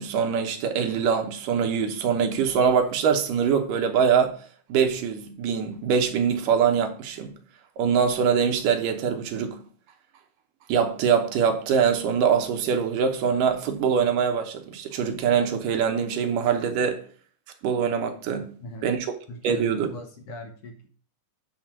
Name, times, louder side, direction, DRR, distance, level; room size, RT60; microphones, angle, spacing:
voice 1, 0.0-4.4 4.7-7.3 7.8-9.6 10.7-17.1 17.6-18.5 18.8-19.2 19.4-19.9, right 7 dB, 85° right, 2.7 m, -23 dB
voice 2, 18.4-18.9 19.3-20.9, left 1 dB, 60° left, 1.8 m, -41 dB
9.4 x 4.5 x 6.0 m
omnidirectional pair, 3.7 m